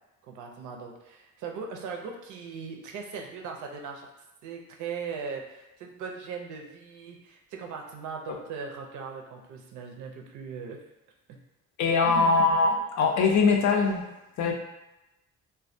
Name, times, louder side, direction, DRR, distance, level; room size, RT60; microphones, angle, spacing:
voice 1, 0.3-4.1 4.4-10.8 11.3-11.4 12.0-12.4 14.4-14.5, right 5 dB, 75° right, 1 dB, 0.5 m, -39 dB
voice 2, 11.8-14.0 14.4-14.5, left 4 dB, 70° left, 2 dB, 0.5 m, -22 dB
2.2 x 2.1 x 2.6 m, 0.94 s
cardioid pair, 90°, 30 cm